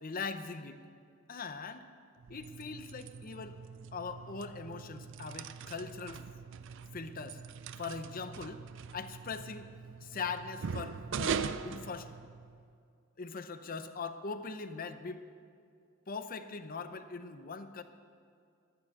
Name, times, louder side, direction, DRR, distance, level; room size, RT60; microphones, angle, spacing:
voice 1, 0.0-0.8 1.3-1.8 2.3-3.6 3.9-6.2 6.9-7.4 7.8-8.6 8.9-9.7 10.0-12.1 13.2-15.2 16.1-17.8, left 4 dB, 40° left, 10 dB, 0.7 m, -41 dB
sound 1, 2.2-12.7, right 6 dB, 60° right, 0.4 m, -42 dB
13.5 x 9.9 x 6.5 m, 2.3 s
head